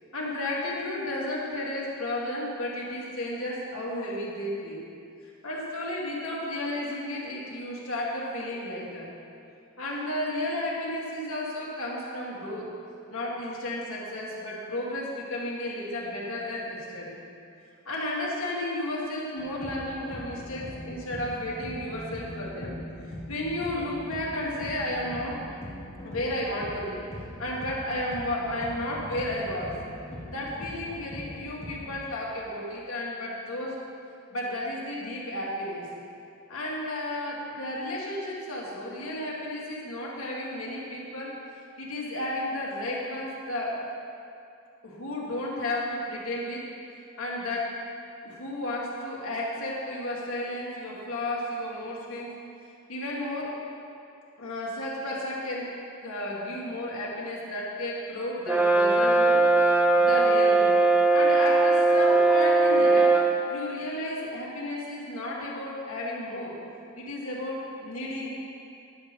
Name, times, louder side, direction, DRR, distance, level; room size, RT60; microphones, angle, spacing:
voice 1, 0.1-4.8 5.4-9.1 9.8-12.7 13.1-17.2 17.9-22.8 23.3-25.4 26.0-27.0 27.4-29.7 30.3-33.8 34.3-35.8 36.5-41.3 41.8-43.8 44.8-46.6 47.2-47.7 48.2-52.3 52.9-53.5 54.4-55.7 56.0-60.8 61.1-63.1 63.5-66.5 66.9-68.3, left 1 dB, 75° left, -4 dB, 2.1 m, -33 dB
sound 1, 19.4-32.0, left 1 dB, 30° left, 1.9 m, -41 dB
Brass instrument, 58.5-63.4, right 3 dB, 10° right, 0.5 m, -20 dB
11.0 x 6.7 x 5.2 m, 2.5 s
head